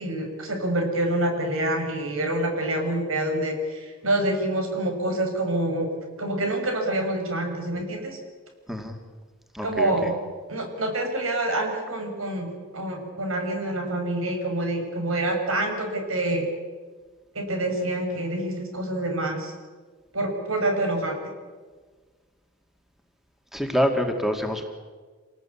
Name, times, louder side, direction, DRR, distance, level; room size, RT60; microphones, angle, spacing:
voice 1, 0.0-5.9 6.2-8.2 9.6-10.2 10.5-16.5 17.3-19.5 20.1-21.2, right 1 dB, 90° right, 3 dB, 6.3 m, -27 dB
voice 2, 9.5-10.1 23.5-24.6, equal, ahead, 4 dB, 2.3 m, -26 dB
27.5 x 18.5 x 8.6 m, 1.5 s
head